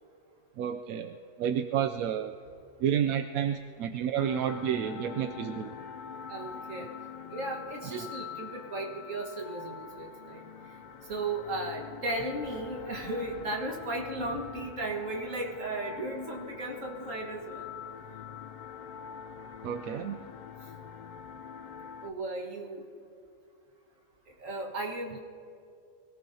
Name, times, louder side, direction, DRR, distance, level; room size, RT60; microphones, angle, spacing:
voice 1, 0.6-2.3 2.8-5.7 7.8-8.1 19.6-20.2, right 9 dB, 85° right, 7 dB, 1.0 m, -30 dB
sound 1, 4.1-22.1, left 8 dB, 65° left, 0.4 m, -44 dB
voice 2, 6.3-6.9 7.3-10.5 11.1-17.7 22.0-22.9 24.4-25.2, right 2 dB, 65° right, 1 dB, 2.0 m, -35 dB
24.5 x 18.0 x 2.8 m, 2.5 s
omnidirectional pair, 1.4 m